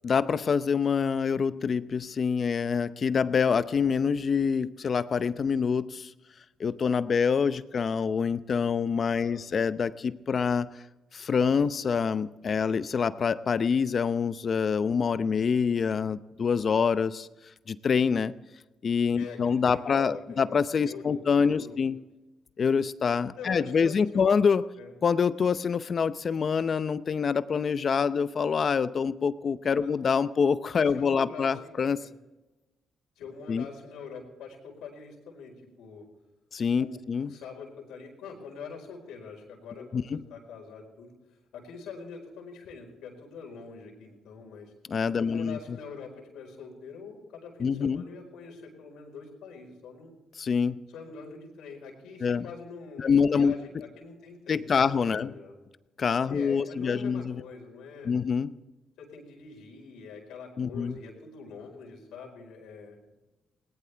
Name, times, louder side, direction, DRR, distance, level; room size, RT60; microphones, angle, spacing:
voice 1, 0.0-6.1 6.6-10.7 11.1-17.3 17.7-18.3 18.8-22.0 22.6-24.6 25.0-32.0 33.5-33.7 36.5-37.3 39.9-40.2 44.9-45.8 47.6-48.0 50.4-50.8 52.2-52.5 53.0-53.5 54.5-55.3 56.0-57.4 58.0-58.5 60.6-61.0, left 6 dB, 45° left, 14 dB, 0.7 m, -26 dB
voice 2, 19.1-20.6 20.8-21.9 23.4-24.3 24.8-24.9 29.8-29.9 30.9-32.1 33.2-36.1 36.7-41.1 41.5-44.7 45.1-50.1 50.9-55.6 56.3-58.2 59.0-63.0, left 5 dB, 90° left, 1 dB, 4.6 m, -44 dB
20.0 x 18.5 x 3.5 m, 1.1 s
cardioid pair, 90°, 0 cm